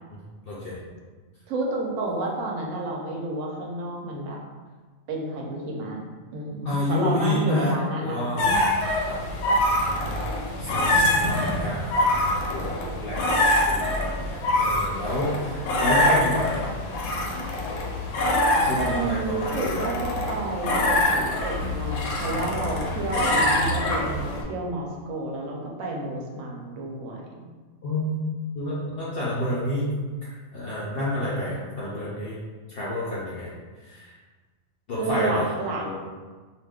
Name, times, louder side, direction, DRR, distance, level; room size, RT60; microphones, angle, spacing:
voice 1, 0.5-0.8 6.6-7.7 8.0-8.8 9.1-9.6 10.0-10.3 10.6-12.7 12.9-16.7 18.6-19.8 27.8-28.1 28.6-29.9 30.2-32.3 32.7-33.5 33.8-34.1 34.9-35.5 35.8-36.0, left 1 dB, 65° left, -6 dB, 0.6 m, -29 dB
voice 2, 1.5-4.4 5.1-6.0 6.3-8.6 10.9-11.6 18.7-27.5 35.0-35.9, right 2 dB, 75° right, -1 dB, 1.0 m, -30 dB
sound 1, 8.4-24.4, left 1 dB, 90° left, 1.0 m, -24 dB
2.4 x 2.3 x 3.4 m, 1.4 s
omnidirectional pair, 1.4 m